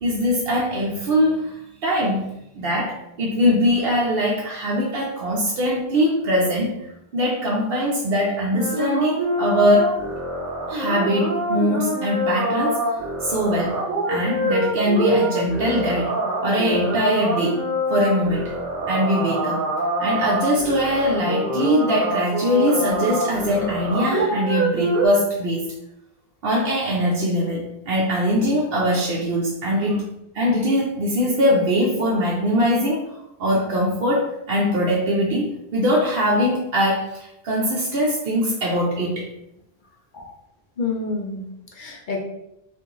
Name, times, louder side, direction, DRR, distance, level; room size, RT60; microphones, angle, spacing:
voice 1, 0.0-6.7 7.1-10.0 10.7-12.8 13.2-17.6 17.9-18.5 18.9-19.6 20.0-25.6 26.4-30.1 30.3-33.0 33.4-39.3, equal, 65° right, -4 dB, 0.8 m, -22 dB
sound 1, 8.5-25.1, right 1 dB, 40° right, 1.2 m, -25 dB
voice 2, 40.8-42.2, left 4 dB, 55° left, 0 dB, 0.7 m, -29 dB
2.9 x 2.5 x 3.7 m, 0.82 s
omnidirectional pair, 1.1 m